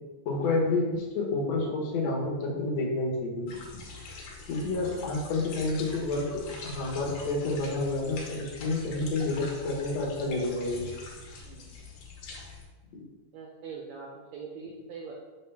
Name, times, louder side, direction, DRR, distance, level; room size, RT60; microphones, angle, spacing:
voice 1, 0.3-3.5 4.5-10.9, left 2 dB, 60° left, -2 dB, 2.2 m, -29 dB
sound 1, 3.5-12.6, left 3 dB, 90° left, 2.7 m, -44 dB
voice 2, 4.8-5.1 11.4-11.9 13.3-15.1, right 5 dB, 75° right, -1 dB, 1.7 m, -43 dB
6.4 x 5.5 x 3.4 m, 1.3 s
omnidirectional pair, 3.8 m